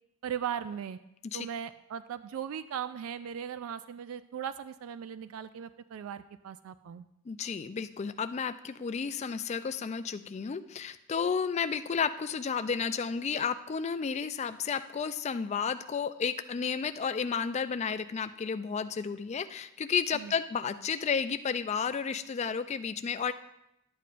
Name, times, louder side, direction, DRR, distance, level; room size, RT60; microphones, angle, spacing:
voice 1, 0.2-1.0 1.3-7.1 20.1-20.4, right 8 dB, 75° right, 12 dB, 0.3 m, -38 dB
voice 2, 7.3-23.3, left 6 dB, 30° left, 11 dB, 0.3 m, -32 dB
11.5 x 8.5 x 2.5 m, 0.84 s
head